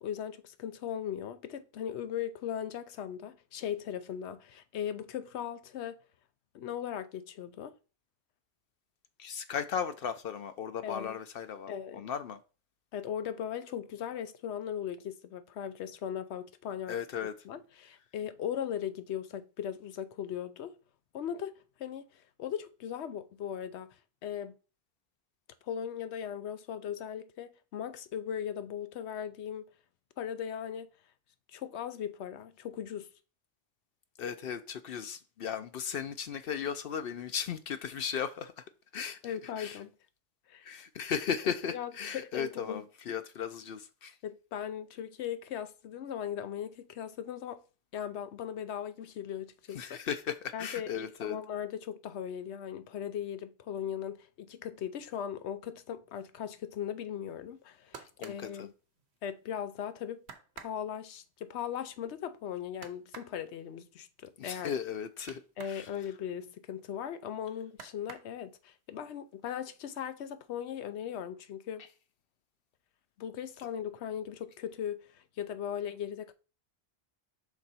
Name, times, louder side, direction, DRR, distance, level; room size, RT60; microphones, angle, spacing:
voice 1, 0.0-6.0 6.5-7.7 10.8-11.2 11.7-12.0 12.9-17.0 17.4-20.8 21.1-24.0 24.2-24.6 25.6-29.7 30.2-30.9 31.5-33.1 39.2-39.9 40.5-40.8 41.7-42.8 44.2-47.6 47.9-50.0 50.5-58.7 59.2-60.2 60.6-64.8 65.6-71.9 73.2-76.3, left 9 dB, 90° left, 0.9 m, -38 dB
voice 2, 9.2-12.4 16.9-17.3 34.2-38.5 38.9-39.8 40.6-44.1 49.7-51.4 58.2-58.7 64.4-65.9, left 7 dB, 65° left, 0.7 m, -36 dB
sound 1, 57.5-59.5 59.9-60.0 60.2-65.9 66.2-67.3 67.7-68.8 69.2-69.8 70.1-70.8 71.1-71.2, right 6 dB, 80° right, 1.1 m, -52 dB
6.0 x 3.8 x 4.2 m
omnidirectional pair, 1.1 m